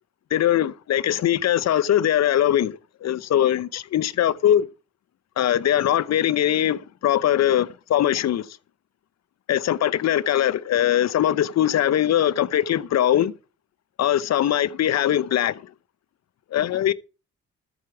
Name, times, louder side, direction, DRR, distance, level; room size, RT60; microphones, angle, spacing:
voice 1, 0.3-4.7 5.4-8.5 9.5-13.3 14.0-15.6 16.5-16.9, left 11 dB, 60° left, 0.8 m, -21 dB
13.0 x 9.9 x 4.7 m
cardioid pair, 90°, 30 cm